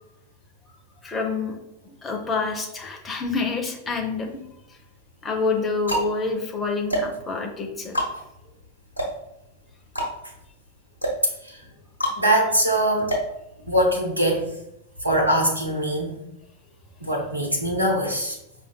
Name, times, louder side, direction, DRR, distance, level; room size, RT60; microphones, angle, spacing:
voice 1, 1.0-1.6 2.0-4.3 4.7-4.8 5.2-8.0, left 4 dB, 15° left, 2 dB, 0.6 m, -27 dB
sound 1, 3.9-4.6 5.3-14.1, equal, 85° left, 1.0 m, -30 dB
voice 2, 12.2-13.1 13.7-14.5 15.0-16.2 17.0-18.3, right 1 dB, 90° right, -1 dB, 0.7 m, -22 dB
4.9 x 2.5 x 2.2 m, 0.85 s
figure-of-eight pair, 90°, 0 cm